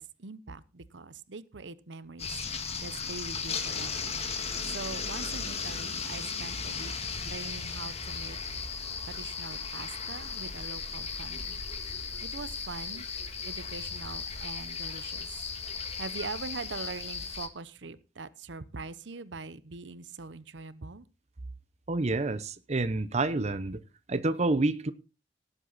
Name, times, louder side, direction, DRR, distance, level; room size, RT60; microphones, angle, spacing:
voice 1, 0.0-2.4 2.8-4.1 4.6-6.9 7.2-8.4 9.0-11.6 12.2-13.1 13.4-15.4 16.0-21.1, right 4 dB, 90° right, 0.8 m, -42 dB
sound 1, 2.2-17.5, left 5 dB, 35° left, 1.7 m, -36 dB
voice 2, 21.9-23.8 24.1-24.9, right 2 dB, 40° right, 0.8 m, -28 dB
18.0 x 8.1 x 4.1 m
head